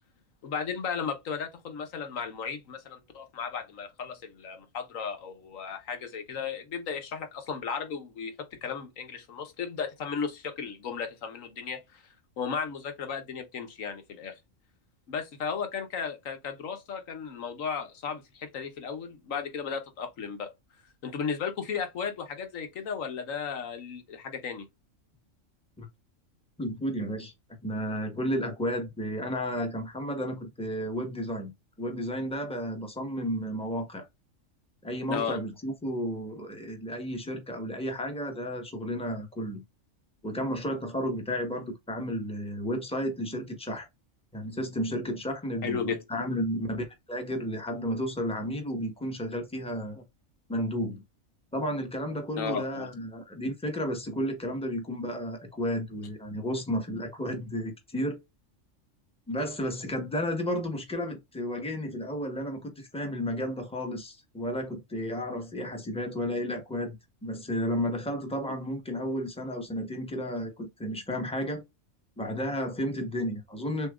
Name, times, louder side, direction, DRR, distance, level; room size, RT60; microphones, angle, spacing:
voice 1, 0.4-12.0 12.4-14.4 15.1-20.5 21.0-24.7 35.1-35.4 45.6-46.0 52.4-52.9, left 6 dB, 85° left, 1.4 m, -35 dB
voice 2, 26.6-27.3 27.6-31.5 31.8-34.1 34.8-39.6 40.2-43.9 44.3-50.0 50.5-51.0 51.5-58.2 59.3-67.0 67.2-71.6 72.2-73.9, equal, 5° left, 1.2 m, -32 dB
6.9 x 2.8 x 2.4 m
omnidirectional pair, 1.3 m